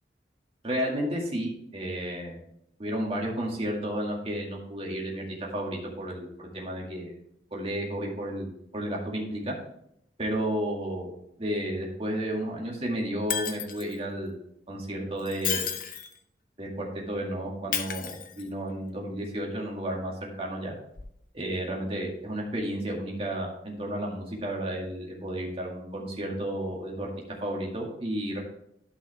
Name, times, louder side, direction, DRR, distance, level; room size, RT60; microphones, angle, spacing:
voice 1, 0.6-2.4 2.8-5.2 5.5-7.1 7.5-9.5 10.2-11.1 11.4-14.4 14.7-15.7 16.6-20.7 21.3-27.1 27.4-28.4, right 1 dB, 35° right, -2 dB, 2.1 m, -32 dB
Shatter, 13.3-14.0 15.2-16.2 17.7-18.7 21.0-21.1, left 8 dB, 50° left, 0.8 m, -32 dB
12.5 x 5.5 x 3.5 m, 0.73 s
head